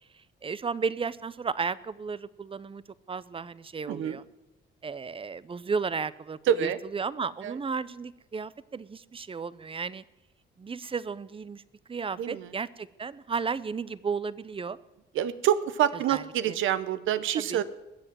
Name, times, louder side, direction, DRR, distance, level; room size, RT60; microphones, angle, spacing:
voice 1, 0.4-2.8 3.1-4.2 4.8-10.0 10.6-11.6 11.9-14.8 16.1-16.6 17.4-17.6, right 5 dB, 25° right, 19 dB, 0.7 m, -34 dB
voice 2, 3.9-4.2 6.5-6.8 7.4-7.6 12.2-12.5 15.1-17.6, right 10 dB, 80° right, 14 dB, 1.0 m, -26 dB
21.0 x 7.8 x 7.5 m, 1.0 s
cardioid pair, 90°, 20 cm